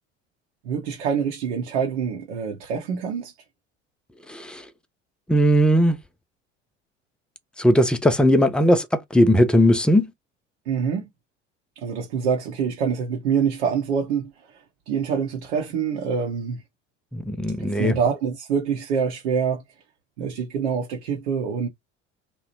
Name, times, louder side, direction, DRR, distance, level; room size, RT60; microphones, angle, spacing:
voice 1, 0.6-3.3 10.7-11.1 11.8-16.6 17.6-19.6 20.2-21.7, right 6 dB, 65° right, 0.7 m, -26 dB
voice 2, 4.3-4.6 5.3-6.0 7.6-8.9 9.1-10.1 17.1-18.0, equal, 5° left, 0.3 m, -18 dB
2.8 x 2.0 x 2.8 m
figure-of-eight pair, 60°, 36 cm